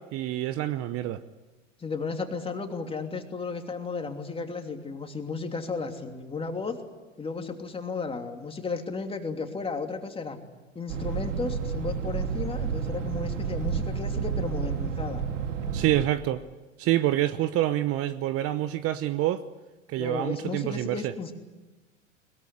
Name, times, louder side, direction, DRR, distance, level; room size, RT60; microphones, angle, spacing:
voice 1, 0.1-1.2 15.7-16.4 16.8-19.4 19.9-21.1, right 13 dB, 35° right, 0.9 m, -27 dB
voice 2, 1.8-6.8 7.2-10.4 10.7-15.2 20.0-21.3, left 4 dB, 15° left, 3.0 m, -34 dB
sound 1, 10.9-16.1, right 6 dB, 70° right, 2.5 m, -30 dB
21.5 x 21.5 x 9.8 m
hypercardioid pair, 100°, 39 cm